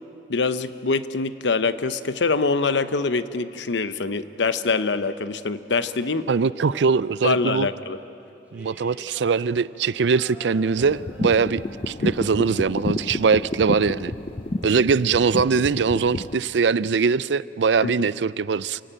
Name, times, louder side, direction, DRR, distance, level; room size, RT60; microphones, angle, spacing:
voice 1, 0.3-6.3 7.2-8.0 17.8-17.9, left 4 dB, 75° left, 12 dB, 0.9 m, -24 dB
voice 2, 6.3-7.7 8.5-11.6 11.9-14.1 14.6-18.8, right 5 dB, 75° right, 19 dB, 0.5 m, -21 dB
sound 1, 6.6-8.1 8.5-11.8, right 1 dB, 10° right, 2.6 m, -47 dB
sound 2, 10.8-16.3, left 2 dB, 30° left, 0.6 m, -30 dB
28.0 x 17.0 x 9.0 m, 2.7 s
head